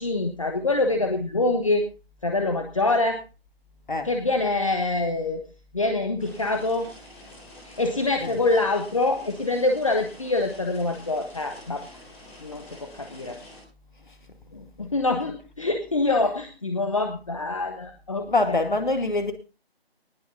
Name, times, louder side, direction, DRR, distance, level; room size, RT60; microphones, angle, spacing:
voice 1, 0.0-1.9 2.2-3.2 4.0-5.5 5.7-6.9 7.6-11.8 12.4-13.4 14.5-18.6, left 2 dB, 30° left, 1.3 m, -25 dB
sound 1, 6.2-13.6, left 1 dB, 15° left, 3.6 m, -47 dB
voice 2, 18.3-19.3, left 2 dB, 50° left, 2.3 m, -24 dB
19.0 x 6.5 x 5.3 m
figure-of-eight pair, 160°, 31 cm